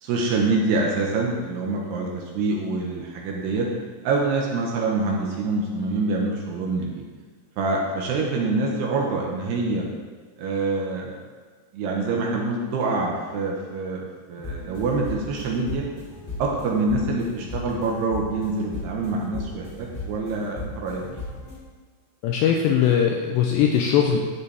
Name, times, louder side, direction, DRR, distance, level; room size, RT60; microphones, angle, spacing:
voice 1, 0.0-3.7 4.0-7.0 7.6-9.9 10.4-11.2 11.7-15.9 16.4-21.2, right 3 dB, 75° right, -1 dB, 2.6 m, -25 dB
sound 1, 14.4-21.6, left 2 dB, 30° left, 1.0 m, -37 dB
voice 2, 22.2-24.3, left 8 dB, 85° left, 1 dB, 2.5 m, -20 dB
13.0 x 7.0 x 3.4 m, 1.4 s
omnidirectional pair, 5.6 m